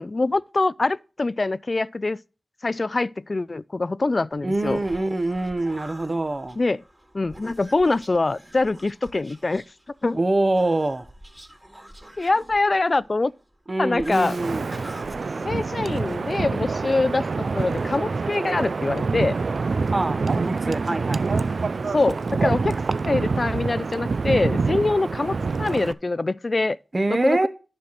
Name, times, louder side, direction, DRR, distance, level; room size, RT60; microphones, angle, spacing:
voice 1, 0.0-2.2 2.6-4.8 6.6-6.8 7.1-9.6 10.0-10.2 12.2-13.3 13.8-14.4 15.4-19.4 21.9-22.7 23.1-26.8 27.1-27.5, left 3 dB, 45° left, 0.4 m, -24 dB
Human voice, 4.3-16.6, equal, 15° right, 2.8 m, -46 dB
voice 2, 4.4-6.6 10.1-11.1 13.7-14.6 19.8-21.3 26.9-27.5, right 2 dB, 40° right, 1.2 m, -24 dB
Wind, 14.1-25.9, right 4 dB, 75° right, 0.4 m, -26 dB
10.5 x 6.5 x 4.1 m
wide cardioid pair, 60°, 0 cm